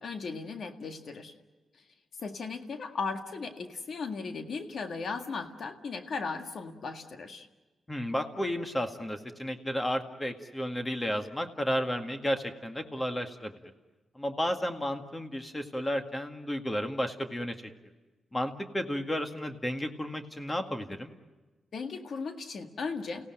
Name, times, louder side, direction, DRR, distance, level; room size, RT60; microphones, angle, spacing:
voice 1, 0.0-1.3 2.2-7.5 21.7-23.3, left 4 dB, 65° left, 6 dB, 1.9 m, -37 dB
voice 2, 7.9-13.5 14.2-17.5 18.3-21.1, equal, 20° left, 5 dB, 1.9 m, -32 dB
29.5 x 16.5 x 9.0 m, 1.2 s
cardioid pair, 70°, 0 cm